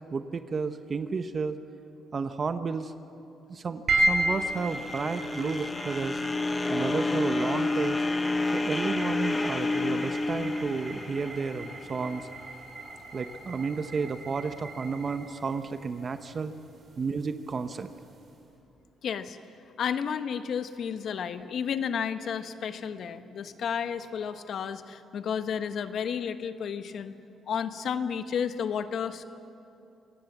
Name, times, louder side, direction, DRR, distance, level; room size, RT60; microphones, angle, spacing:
voice 1, 0.1-1.6 2.1-2.9 3.5-6.2 6.7-8.0 8.5-12.3 13.1-16.5 17.0-17.9, right 5 dB, 40° right, 9 dB, 1.0 m, -32 dB
sound 1, 3.9-18.3, right 1 dB, 60° right, 4.9 m, -35 dB
sound 2, 4.0-12.2, left 2 dB, 25° left, 1.0 m, -30 dB
voice 2, 19.0-19.4 19.8-27.1 27.5-29.3, left 7 dB, 65° left, 9 dB, 1.2 m, -32 dB
26.5 x 19.0 x 7.3 m, 2.9 s
cardioid pair, 90°, 0 cm